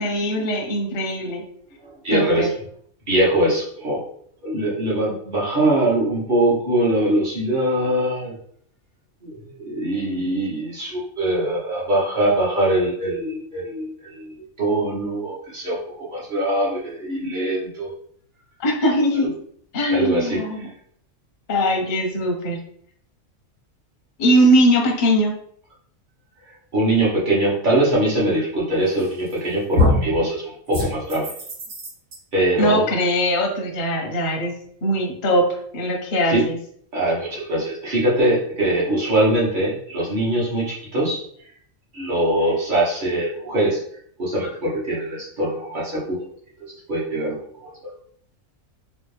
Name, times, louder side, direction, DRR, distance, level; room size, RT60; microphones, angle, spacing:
voice 1, 0.0-1.4 2.1-2.5 18.6-19.3 19.7-20.6 21.5-22.6 24.2-25.3 32.6-34.5 34.8-36.5, equal, 45° left, 1 dB, 0.7 m, -20 dB
voice 2, 1.8-2.5 3.1-4.0 4.4-8.4 9.2-17.9 19.9-20.7 26.7-31.3 32.3-32.9 34.0-34.1 36.2-36.5 36.9-41.2 41.9-43.8 44.2-46.3 46.6-47.9, right 1 dB, 40° right, -6 dB, 1.3 m, -22 dB
sound 1, 29.0-29.4 29.8-30.2 30.7-32.2, left 2 dB, 85° right, 1.4 m, -22 dB
3.1 x 2.5 x 3.2 m, 0.63 s
omnidirectional pair, 1.4 m